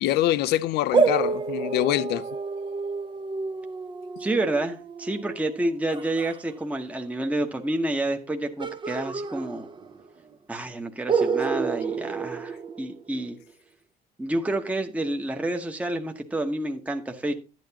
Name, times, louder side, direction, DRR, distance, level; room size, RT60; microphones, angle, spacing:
voice 1, 0.0-2.3, left 14 dB, 80° left, 0.5 m, -24 dB
sound 1, 0.9-6.4 8.6-10.1 10.3-10.4 11.1-13.3, right 5 dB, 30° right, 0.6 m, -29 dB
voice 2, 4.2-9.7 10.5-13.4 14.2-17.3, right 1 dB, 10° right, 0.9 m, -29 dB
11.5 x 9.0 x 2.8 m
cardioid pair, 110°, 17 cm